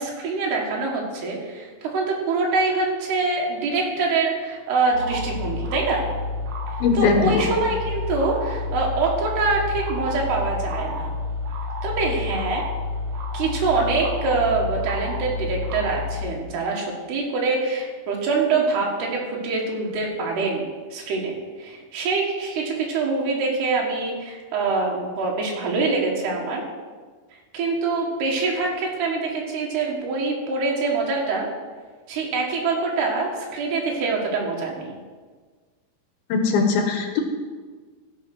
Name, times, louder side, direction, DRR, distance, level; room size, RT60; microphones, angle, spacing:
voice 1, 0.0-6.1 7.0-11.1 11.8-12.7 13.3-26.6 27.5-31.5 32.1-35.0, right 3 dB, 85° right, -1 dB, 3.8 m, -24 dB
sound 1, 4.9-16.2, left 3 dB, 60° right, 2.2 m, -29 dB
voice 2, 6.8-7.4 36.3-37.2, left 5 dB, 75° left, 4 dB, 2.9 m, -20 dB
15.5 x 5.9 x 6.1 m, 1.4 s
omnidirectional pair, 4.5 m